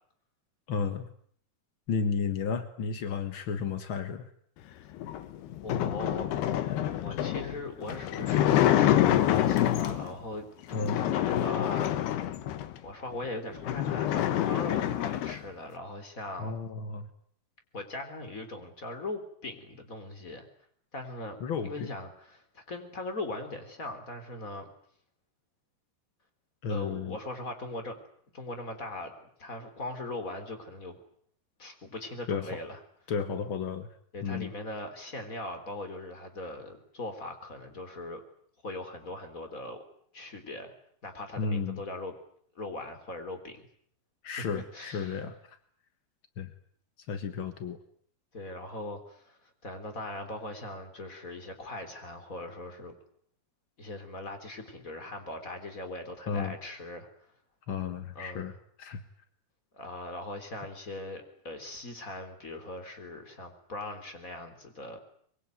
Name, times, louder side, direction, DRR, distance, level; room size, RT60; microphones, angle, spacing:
voice 1, 0.7-1.1 1.9-4.3 10.7-11.0 16.4-17.1 21.4-21.9 26.6-27.2 32.3-32.6 33.1-33.9 34.2-34.5 41.4-41.8 44.2-45.6 46.4-46.5 47.1-47.8 56.3-56.5 57.7-58.5 58.8-59.0, left 5 dB, 65° left, 9 dB, 1.3 m, -33 dB
sound 1, 5.0-10.2 10.7-12.8 13.2-13.3 13.6-15.4, left 12 dB, 85° left, 3.3 m, -27 dB
voice 2, 5.6-6.3 7.0-11.9 12.8-16.5 17.7-20.5 20.9-24.7 26.7-28.0 28.3-31.0 31.6-32.8 34.1-38.2 38.6-39.8 40.1-40.7 41.0-42.2 42.6-43.7 44.4-45.2 48.3-53.0 53.8-57.1 58.1-58.5 59.7-65.0, left 2 dB, 20° left, 7 dB, 3.8 m, -40 dB
24.0 x 23.0 x 9.4 m, 0.62 s
omnidirectional pair, 4.5 m